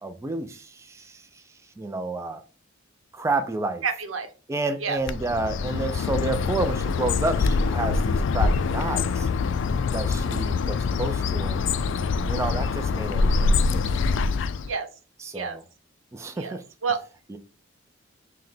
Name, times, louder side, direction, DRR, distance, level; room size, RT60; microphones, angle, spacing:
voice 1, 0.0-1.4 1.8-2.4 3.1-3.8 4.5-9.3 9.9-11.7 12.3-13.8 15.2-15.6 16.1-16.6 17.3-17.4, right 3 dB, 15° right, 0.3 m, -30 dB
voice 2, 3.8-4.3 4.8-5.0 14.7-14.9 15.3-15.6 16.4-17.0, right 5 dB, 90° right, 0.8 m, -29 dB
Bird, 5.0-14.8, left 4 dB, 65° left, 0.3 m, -24 dB
5.7 x 2.1 x 3.2 m
head